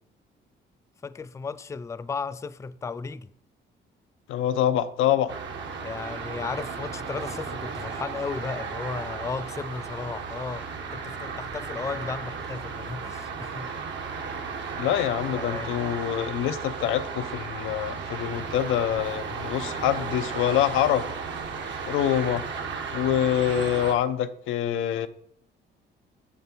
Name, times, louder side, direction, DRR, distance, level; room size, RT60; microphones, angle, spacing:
voice 1, 1.0-3.3 5.8-10.6 10.9-13.7 15.4-15.8, left 4 dB, 15° left, 0.3 m, -35 dB
voice 2, 4.3-5.4 14.8-21.1 21.9-22.4 22.9-25.1, left 11 dB, 90° left, 0.6 m, -25 dB
sound 1, 5.3-23.9, right 5 dB, 70° right, 1.3 m, -34 dB
6.9 x 6.8 x 4.4 m
cardioid pair, 90°, 20 cm